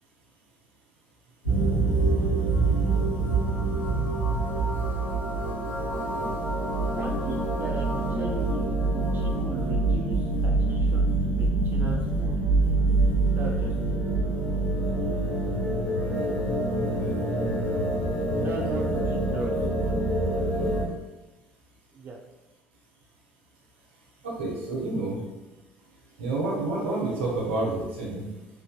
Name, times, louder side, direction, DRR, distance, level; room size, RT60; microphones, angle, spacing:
sound 1, 1.4-20.8, right 2 dB, 85° left, 0.9 m, -25 dB
voice 1, 2.6-3.0 6.1-6.3 10.2-10.3 16.8-17.2 18.3-19.0 20.5-20.7 24.2-25.2 26.2-28.4, right 2 dB, 75° right, -4 dB, 0.8 m, -31 dB
voice 2, 6.9-12.3 13.3-13.7 18.4-19.6 21.9-22.2, right 3 dB, 30° right, 0 dB, 0.4 m, -38 dB
3.1 x 2.5 x 2.2 m, 1.0 s
figure-of-eight pair, 60°, 6 cm